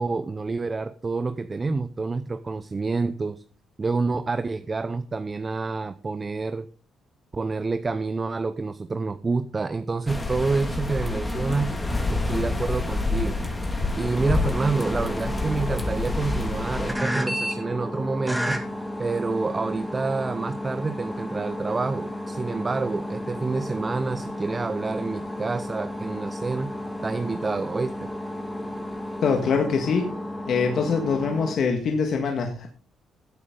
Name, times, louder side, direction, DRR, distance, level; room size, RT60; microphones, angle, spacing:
voice 1, 0.0-3.4 3.8-6.7 7.3-11.8 12.1-13.4 14.0-18.6 19.0-26.7 27.0-28.1, right 3 dB, 30° right, 11 dB, 0.7 m, -28 dB
sound 1, 10.1-16.9, left 2 dB, 15° left, 2.2 m, -28 dB
sound 2, 14.1-31.5, left 1 dB, ahead, 2.1 m, -33 dB
voice 2, 29.2-30.1 30.5-32.7, left 5 dB, 60° left, 3 dB, 1.7 m, -23 dB
15.0 x 8.5 x 3.8 m, 0.42 s
cardioid pair, 90°, 0 cm